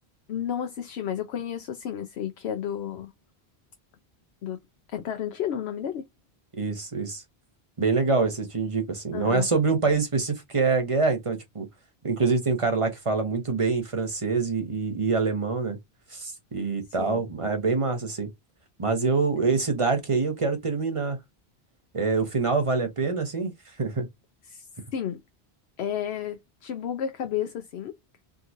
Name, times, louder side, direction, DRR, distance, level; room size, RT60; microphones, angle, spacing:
voice 1, 0.3-3.1 4.4-4.6 4.9-6.1 9.1-9.5 17.0-17.2 19.4-19.6 24.5-25.2 25.8-28.0, left 9 dB, 80° left, 0.9 m, -32 dB
voice 2, 6.5-7.2 7.8-11.7 12.0-15.8 16.1-18.3 18.8-21.2 21.9-24.1, right 4 dB, 30° right, 1.1 m, -25 dB
3.6 x 2.9 x 2.4 m
omnidirectional pair, 1.1 m